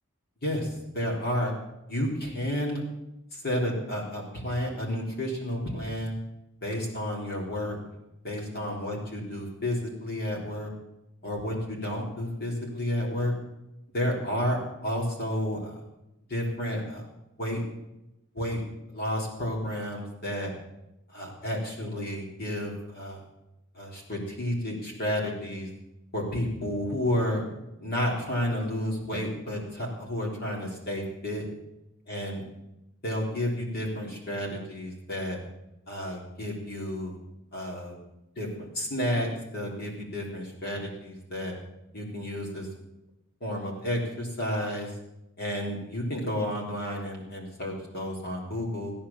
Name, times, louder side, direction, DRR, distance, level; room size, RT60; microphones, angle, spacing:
voice 1, 0.4-1.5 1.9-2.8 3.3-6.1 6.6-7.8 8.2-10.7 11.2-13.3 13.9-15.7 16.3-17.1 17.4-17.6 18.3-18.6 18.9-20.5 21.1-23.2 23.7-25.7 26.1-27.4 27.8-31.5 32.1-32.4 33.0-35.4 35.9-37.2 37.5-38.0 38.4-41.5 41.9-42.7 43.4-44.9 45.4-48.9, left 1 dB, 45° left, -2 dB, 3.8 m, -31 dB
16.5 x 10.0 x 7.3 m, 0.90 s
head